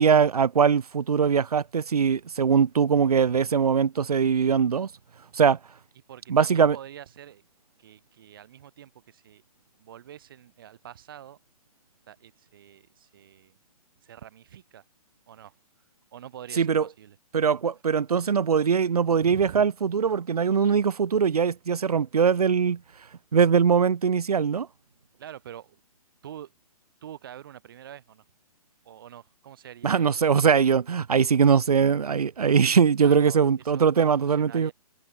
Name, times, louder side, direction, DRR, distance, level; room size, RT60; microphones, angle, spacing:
voice 1, 0.0-4.9 5.3-5.6 6.3-6.8 16.6-16.8 17.3-22.8 23.3-24.7 29.8-34.7, right 6 dB, 75° right, 2.7 m, -21 dB
voice 2, 6.1-7.4 7.8-9.4 9.8-11.4 12.1-13.5 14.0-14.8 15.3-15.5 16.1-17.2 19.1-19.6 25.2-25.8 26.2-26.5 27.0-28.2 28.8-30.2 33.0-34.7, right 10 dB, 35° right, 7.6 m, -45 dB
hypercardioid pair, 180°, 20 cm